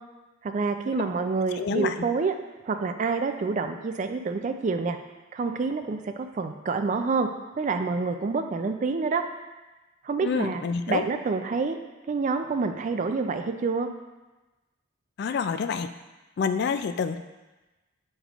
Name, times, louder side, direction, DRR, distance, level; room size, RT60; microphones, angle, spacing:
voice 1, 0.4-2.3 2.7-5.0 5.3-7.3 7.6-9.2 10.0-10.6 10.9-11.8 12.1-13.9, right 4 dB, 40° right, 7 dB, 0.3 m, -27 dB
voice 2, 1.6-1.9 10.2-11.1 15.2-15.9 16.4-17.2, left 5 dB, 55° left, 10 dB, 0.3 m, -27 dB
7.3 x 5.2 x 2.4 m, 1.1 s
head